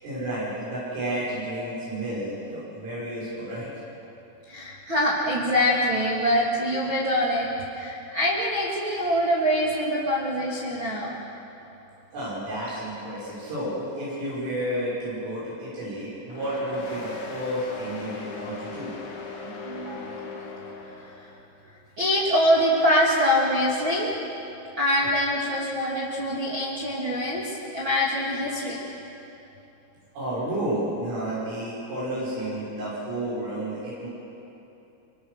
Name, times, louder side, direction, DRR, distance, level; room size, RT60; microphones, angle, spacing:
voice 1, 0.0-3.7 12.1-18.9 30.2-34.1, right 1 dB, 80° right, -9 dB, 8.8 m, -31 dB
voice 2, 4.5-7.5 7.7-11.2 19.4-20.1 22.0-24.2 24.8-28.9, equal, 35° right, -6 dB, 2.3 m, -24 dB
sound 1, 16.3-21.4, left 4 dB, 50° left, 2.8 m, -38 dB
26.0 x 23.5 x 6.5 m, 2.9 s
omnidirectional pair, 5.6 m